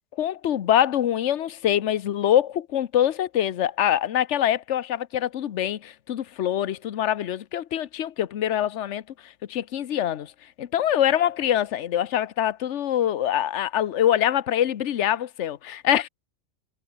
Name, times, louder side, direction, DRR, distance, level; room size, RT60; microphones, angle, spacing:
voice 1, 0.2-10.3 10.6-16.1, left 11 dB, 70° left, 1.1 m, -24 dB
omnidirectional pair, 1.3 m